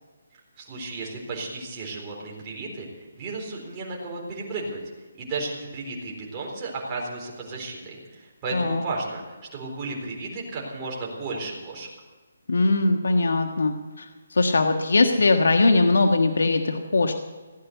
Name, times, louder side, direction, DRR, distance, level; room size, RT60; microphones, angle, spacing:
voice 1, 0.6-4.8 5.2-11.9, right 3 dB, 20° right, -3 dB, 4.0 m, -34 dB
voice 2, 8.5-8.8 12.5-14.0 14.3-17.1, left 3 dB, 85° left, 5 dB, 1.5 m, -21 dB
17.0 x 9.9 x 8.2 m, 1.3 s
hypercardioid pair, 165°, 0 cm